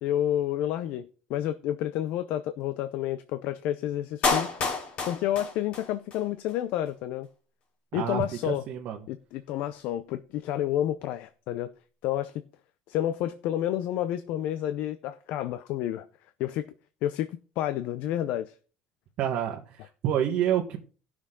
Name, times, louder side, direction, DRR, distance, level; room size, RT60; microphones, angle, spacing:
voice 1, 0.0-4.5 5.0-7.3 7.9-8.6 9.1-11.7 12.0-12.4 12.9-16.1 16.4-16.7 17.0-18.5, left 12 dB, 65° left, 0.6 m, -30 dB
Clapping, 4.2-6.2 6.5-6.6, left 4 dB, 45° left, 2.3 m, -29 dB
voice 2, 7.9-9.1 19.2-20.8, right 10 dB, 55° right, 1.4 m, -28 dB
16.5 x 6.2 x 3.8 m
cardioid pair, 155°, 3 cm